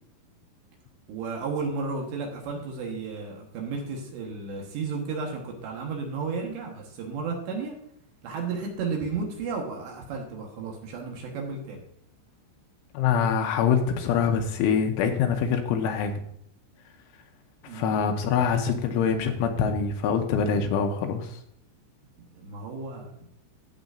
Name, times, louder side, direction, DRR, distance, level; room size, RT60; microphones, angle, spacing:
voice 1, 1.1-7.7 8.2-11.8 17.7-18.0 22.3-23.3, right 4 dB, 70° right, 0 dB, 3.1 m, -33 dB
voice 2, 12.9-16.1 17.6-21.4, left 6 dB, 85° left, 5 dB, 3.0 m, -24 dB
14.5 x 7.9 x 2.6 m, 0.69 s
omnidirectional pair, 5.9 m